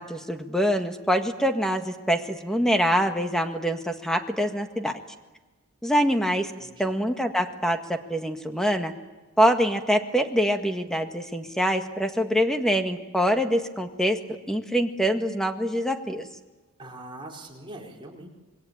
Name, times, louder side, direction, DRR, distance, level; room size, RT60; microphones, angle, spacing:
voice 1, 0.0-5.0 5.8-6.5 6.8-8.9 9.4-14.2 14.5-16.3, equal, ahead, 5 dB, 1.7 m, -24 dB
voice 2, 6.6-6.9 16.8-18.3, right 1 dB, 25° right, -1 dB, 4.5 m, -42 dB
26.5 x 22.0 x 8.8 m, 1.2 s
head